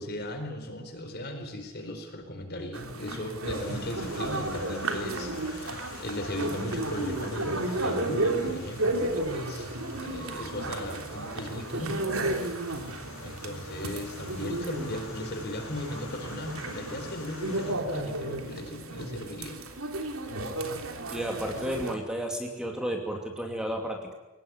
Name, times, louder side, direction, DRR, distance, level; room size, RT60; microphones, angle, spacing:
voice 1, 0.0-9.7 10.0-12.0 13.1-19.6, left 1 dB, 45° left, 6 dB, 4.4 m, -37 dB
sound 1, 2.7-22.0, right 2 dB, 75° right, 3.2 m, -33 dB
sound 2, 3.5-17.7, left 3 dB, 70° left, 7.6 m, -46 dB
voice 2, 21.1-24.1, equal, 5° right, 2 dB, 2.7 m, -32 dB
23.0 x 19.0 x 9.6 m, 1.0 s
head